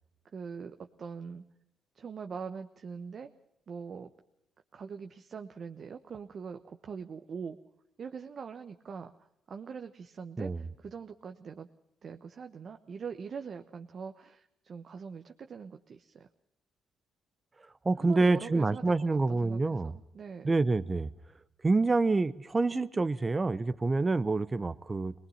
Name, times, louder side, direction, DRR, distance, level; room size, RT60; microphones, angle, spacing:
voice 1, 0.3-1.4 1.9-3.3 3.7-4.1 4.7-7.6 8.0-11.7 12.0-16.3 18.0-20.5, right 6 dB, 50° right, 1.1 m, -42 dB
voice 2, 17.8-19.9 20.4-21.1 21.6-25.1, right 3 dB, 25° right, 0.9 m, -27 dB
23.0 x 20.0 x 5.8 m
cardioid pair, 90°, 0 cm